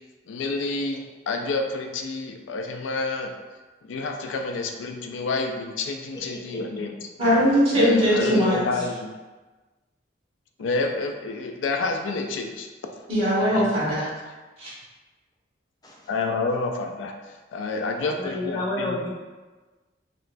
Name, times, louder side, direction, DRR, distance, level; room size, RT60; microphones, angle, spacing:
voice 1, 0.3-3.3 3.8-7.0 7.7-9.1 10.6-12.7 13.4-13.7 16.1-19.0, left 3 dB, 80° left, 3 dB, 0.3 m, -29 dB
voice 2, 7.2-8.6 13.1-14.1 14.6-14.7, equal, 30° right, -9 dB, 1.3 m, -20 dB
voice 3, 18.0-19.1, left 1 dB, 20° left, -3 dB, 0.5 m, -31 dB
3.0 x 3.0 x 2.5 m, 1.3 s
head